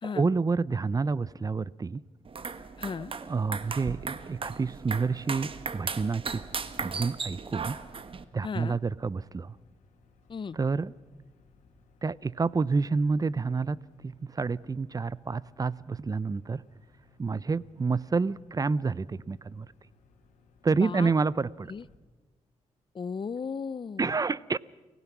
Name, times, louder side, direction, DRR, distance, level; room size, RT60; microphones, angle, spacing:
voice 1, 0.0-2.0 3.3-6.4 6.8-7.7 8.3-9.6 10.5-10.9 12.0-13.8 14.0-16.6 17.2-19.7 20.6-21.7 24.0-24.6, right 4 dB, 30° right, 21 dB, 0.6 m, -28 dB
sound 1, 2.3-8.2, right 5 dB, 45° right, 1.3 m, -37 dB
voice 2, 2.8-3.1 8.4-8.8 10.3-10.6 20.7-21.1 21.7-21.8 22.9-24.1, left 5 dB, 40° left, 20 dB, 0.6 m, -35 dB
sound 2, 5.2-22.0, left 4 dB, 90° left, 2.6 m, -63 dB
29.5 x 16.5 x 6.0 m, 1.3 s
cardioid pair, 65°, 12 cm